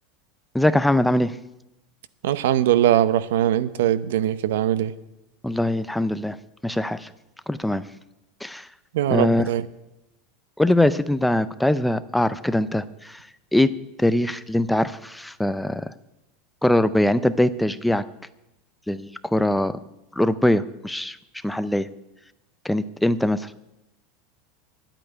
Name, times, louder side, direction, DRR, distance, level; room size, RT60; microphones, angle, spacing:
voice 1, 0.5-1.3 5.4-6.4 6.6-7.1 7.5-7.8 8.4-8.6 9.1-9.4 10.6-13.2 13.5-13.7 14.0-15.8 16.6-18.0 18.9-19.7 20.2-21.2 21.4-21.9 22.6-23.5, left 1 dB, 5° left, 0.4 m, -22 dB
voice 2, 2.2-4.9 8.9-9.7, right 11 dB, 85° right, 0.8 m, -21 dB
10.0 x 8.9 x 9.5 m
supercardioid pair, 160°, 0 cm